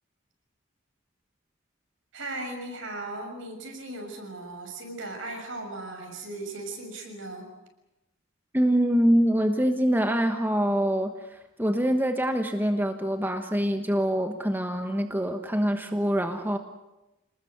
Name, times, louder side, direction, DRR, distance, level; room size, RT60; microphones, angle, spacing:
voice 1, 2.1-7.5, right 2 dB, 60° right, 4 dB, 6.6 m, -37 dB
voice 2, 8.5-16.6, equal, 10° right, 6 dB, 1.2 m, -25 dB
28.5 x 20.0 x 8.0 m, 0.98 s
head